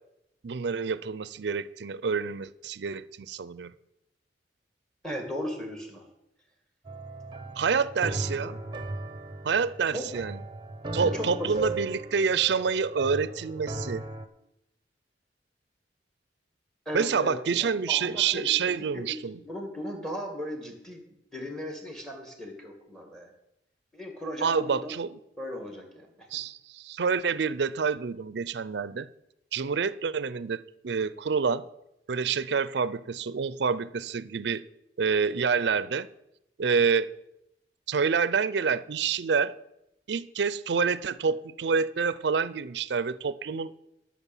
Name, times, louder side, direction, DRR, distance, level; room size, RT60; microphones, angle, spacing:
voice 1, 0.4-3.7 7.6-8.6 9.4-10.4 10.9-14.0 16.9-19.4 24.4-25.2 26.3-29.1 29.5-31.7 32.1-34.6 35.0-36.1 36.6-37.1 37.9-39.5 40.1-43.9, right 5 dB, 70° right, 0.5 m, -27 dB
voice 2, 5.0-6.1 9.9-10.1 10.9-11.5 16.9-19.2 19.4-21.0 21.3-23.3 23.9-24.9 25.4-26.1, equal, 5° left, 2.2 m, -37 dB
sound 1, 6.8-14.3, right 2 dB, 25° right, 0.9 m, -37 dB
12.0 x 6.2 x 7.2 m
head